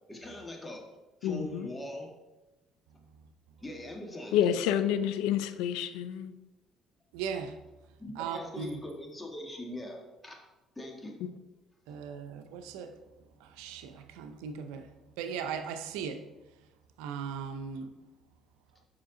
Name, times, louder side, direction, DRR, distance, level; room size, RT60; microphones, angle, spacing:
voice 1, 0.1-0.8 1.2-2.1 3.6-4.8 8.0-10.4 10.7-11.2 11.9-12.0, left 1 dB, 15° left, 1.6 m, -41 dB
voice 2, 1.2-1.7 4.3-6.3, left 10 dB, 85° left, 0.4 m, -28 dB
voice 3, 7.1-7.6 8.2-8.8 11.9-13.0 13.4-16.3 17.0-17.9, right 7 dB, 90° right, 0.6 m, -38 dB
7.7 x 5.7 x 3.8 m
supercardioid pair, 85°, 0 cm